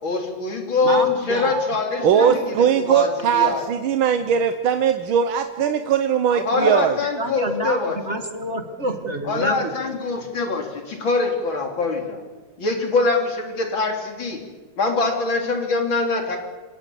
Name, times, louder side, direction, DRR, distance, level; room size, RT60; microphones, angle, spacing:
voice 1, 0.0-3.1 3.3-3.6 6.5-8.0 9.2-12.2 12.6-14.4 14.8-16.4, left 3 dB, 80° left, 3 dB, 3.9 m, -23 dB
voice 2, 0.8-2.7 5.6-5.7 6.3-6.8 7.2-10.0, right 2 dB, 35° right, 6 dB, 2.1 m, -29 dB
voice 3, 2.0-7.0, right 8 dB, 80° right, 8 dB, 1.8 m, -20 dB
27.5 x 17.5 x 7.1 m, 1.3 s
omnidirectional pair, 2.2 m